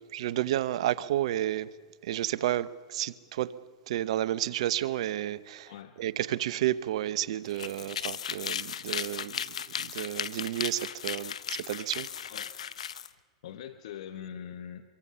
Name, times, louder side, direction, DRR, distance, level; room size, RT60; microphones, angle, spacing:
voice 1, 0.0-1.7 2.0-3.5 3.9-5.7 6.0-12.1, right 13 dB, 70° right, 0.9 m, -31 dB
voice 2, 5.7-6.0 12.3-12.6 13.4-14.8, left 9 dB, 70° left, 1.3 m, -42 dB
sound 1, 7.5-13.1, left 8 dB, 90° left, 0.8 m, -36 dB
25.0 x 23.0 x 5.6 m
hypercardioid pair, 125°, 3 cm